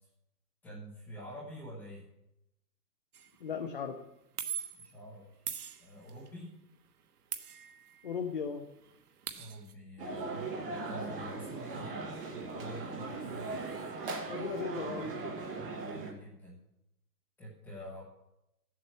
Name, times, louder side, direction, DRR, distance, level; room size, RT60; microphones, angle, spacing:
voice 1, 0.6-2.1 4.8-5.3 5.8-6.6 9.3-13.6 15.8-16.6 17.4-18.0, equal, 5° left, -6 dB, 1.2 m, -47 dB
sound 1, 3.1-3.4 4.4-4.9 5.5-6.3 7.3-8.2 8.5-8.6 8.8-9.7, right 8 dB, 65° right, 1.3 m, -41 dB
voice 2, 3.4-4.0 8.0-8.7 14.3-15.1, left 6 dB, 35° left, 4 dB, 0.8 m, -36 dB
sound 2, 10.0-16.1, right 3 dB, 35° right, 1.9 m, -39 dB
13.5 x 7.7 x 6.8 m, 0.87 s
hypercardioid pair, 175°, 48 cm